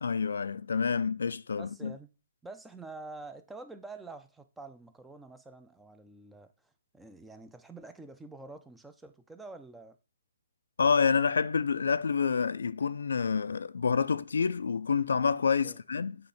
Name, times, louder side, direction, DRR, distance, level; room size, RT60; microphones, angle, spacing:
voice 1, 0.0-1.9 10.8-16.2, left 5 dB, 80° left, 0.4 m, -28 dB
voice 2, 1.6-2.1 2.4-10.0 15.6-15.8, right 3 dB, 5° right, 0.5 m, -47 dB
7.7 x 3.2 x 5.8 m
hypercardioid pair, 150°, 0 cm